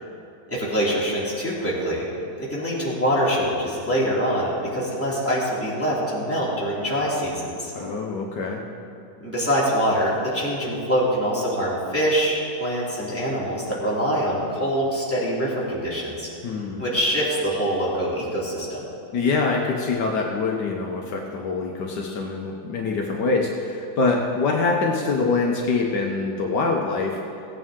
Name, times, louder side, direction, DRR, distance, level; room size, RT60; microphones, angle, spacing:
voice 1, 0.5-2.0 2.5-7.7 9.2-16.3 16.8-18.9, equal, 5° left, -8 dB, 2.8 m, -24 dB
voice 2, 7.7-8.6 16.4-16.8 19.1-27.2, left 3 dB, 70° left, 0 dB, 1.5 m, -24 dB
16.5 x 8.9 x 3.7 m, 2.8 s
omnidirectional pair, 1.9 m